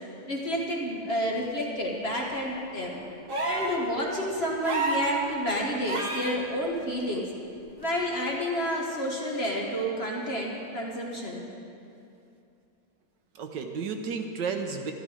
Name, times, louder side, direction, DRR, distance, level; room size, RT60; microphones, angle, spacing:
voice 1, 0.3-3.0 3.4-7.3 7.8-11.5, equal, 35° left, -2 dB, 1.3 m, -30 dB
voice 2, 2.8-3.1 13.3-14.9, right 5 dB, 70° right, 5 dB, 1.4 m, -33 dB
sound 1, 3.3-3.8 4.6-5.1 5.9-6.4 7.8-7.9, right 2 dB, 35° right, 1.0 m, -29 dB
12.0 x 12.0 x 4.9 m, 2.6 s
omnidirectional pair, 2.1 m